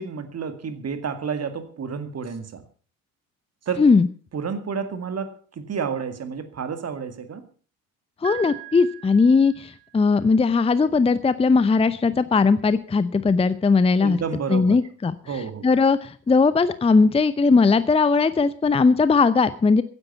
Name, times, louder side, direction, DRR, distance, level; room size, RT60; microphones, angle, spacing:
voice 1, 0.0-2.6 3.7-3.9 4.3-7.5 14.0-14.8 15.3-15.7, right 6 dB, 35° right, 10 dB, 2.2 m, -30 dB
voice 2, 8.2-14.2 14.5-19.8, left 4 dB, 15° left, 15 dB, 0.7 m, -19 dB
Piano, 8.2-10.2, right 15 dB, 55° right, 8.0 m, -40 dB
15.5 x 10.5 x 5.6 m, 0.41 s
figure-of-eight pair, 50°, 43 cm